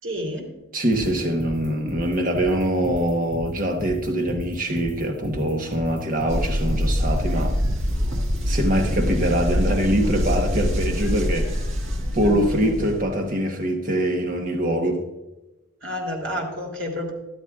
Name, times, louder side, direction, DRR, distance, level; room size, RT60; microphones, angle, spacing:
voice 1, 0.0-0.5 12.2-12.9 15.8-17.1, left 1 dB, 70° right, 3.0 m, -30 dB
voice 2, 0.7-7.6 8.5-11.5 12.1-15.1, equal, 40° right, 1.1 m, -23 dB
sound 1, 0.9-8.4, right 1 dB, 10° right, 2.7 m, -34 dB
sound 2, 6.3-13.0, equal, 85° right, 1.7 m, -24 dB
13.5 x 12.5 x 2.4 m
head